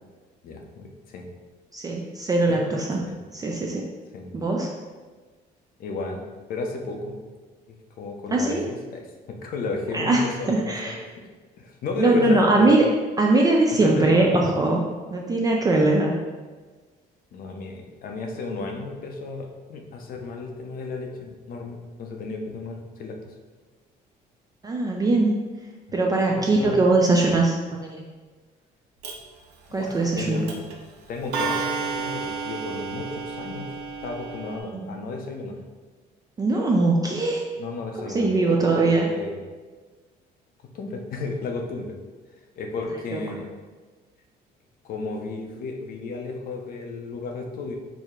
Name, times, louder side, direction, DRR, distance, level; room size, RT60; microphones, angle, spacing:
voice 1, 0.4-1.3 2.5-2.6 3.1-3.2 4.1-4.4 5.8-6.2 6.5-7.2 8.0-11.2 11.6-12.7 13.8-14.4 15.8-15.9 17.3-23.3 25.9-26.0 26.3-26.8 29.7-30.7 31.1-33.7 34.0-35.5 37.6-38.3 38.7-39.4 40.6-42.0 42.6-43.5 44.8-47.8, left 3 dB, 60° left, 2 dB, 0.6 m, -33 dB
voice 2, 1.7-3.0 3.3-3.9 4.3-4.7 8.3-8.6 9.9-11.0 12.0-12.9 13.2-14.8 15.1-16.1 24.6-25.4 25.9-28.1 29.7-30.5 34.7-34.8 36.4-37.4 38.0-39.1 43.1-43.2, right 2 dB, 20° right, -1 dB, 0.4 m, -21 dB
Clock, 29.0-29.1 30.2-30.3 30.5-30.7 31.3-34.6, right 5 dB, 90° right, 0.6 m, -31 dB
4.7 x 2.1 x 3.7 m, 1.4 s
cardioid pair, 110°, 17 cm